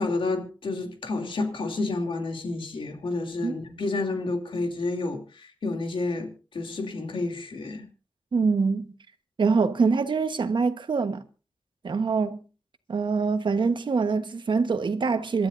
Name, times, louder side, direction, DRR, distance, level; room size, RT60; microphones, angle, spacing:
voice 1, 0.0-7.9, left 3 dB, 85° left, 2.9 m, -30 dB
voice 2, 8.3-8.9 9.4-11.2 11.8-12.4 12.9-15.5, right 4 dB, 65° right, 1.3 m, -24 dB
27.0 x 12.5 x 2.7 m
wide cardioid pair, 100°, 9 cm